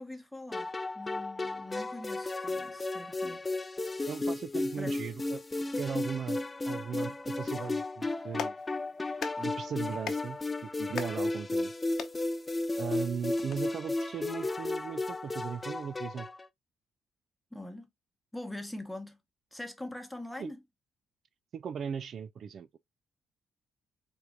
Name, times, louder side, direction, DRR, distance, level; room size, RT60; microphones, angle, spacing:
voice 1, 0.0-3.5 4.8-5.0 17.5-17.9 18.3-19.2 19.5-20.6, left 1 dB, 5° left, 1.0 m, -43 dB
sound 1, 0.5-16.4, left 2 dB, 20° left, 0.5 m, -34 dB
voice 2, 4.1-5.4 5.8-6.4 6.7-8.6 9.4-11.7 12.8-16.3 20.4-20.5 21.5-22.7, right 7 dB, 55° right, 0.3 m, -38 dB
Clapping, 8.1-13.6, left 8 dB, 65° left, 0.8 m, -44 dB
4.4 x 3.5 x 2.3 m
cardioid pair, 90°, 0 cm